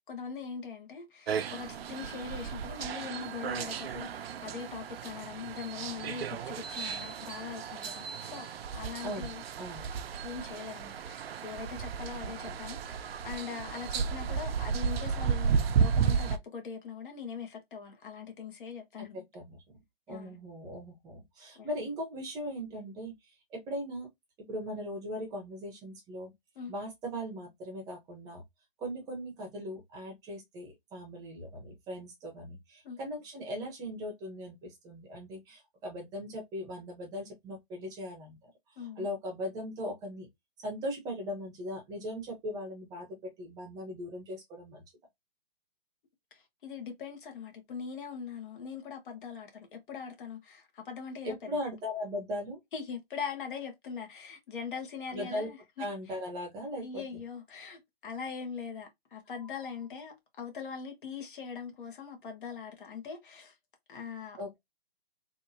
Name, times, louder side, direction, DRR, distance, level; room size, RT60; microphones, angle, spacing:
voice 1, 0.1-8.5 8.7-9.4 10.2-19.2 20.1-20.4 21.5-21.7 26.5-26.7 32.8-33.0 38.8-39.1 46.3-51.4 52.7-55.9 56.8-63.5 63.9-64.4, left 6 dB, 55° left, 1.4 m, -41 dB
sound 1, 1.3-16.4, right 6 dB, 70° right, 0.6 m, -33 dB
voice 2, 9.0-9.9 12.4-12.6 19.0-19.6 20.1-23.1 23.5-24.1 24.5-26.3 26.7-28.4 28.8-38.5 39.0-40.3 40.6-44.8 51.2-52.6 55.1-55.5 55.8-57.2 64.4-64.6, equal, 10° right, 0.8 m, -39 dB
3.6 x 2.6 x 2.7 m
hypercardioid pair, 155°, 31 cm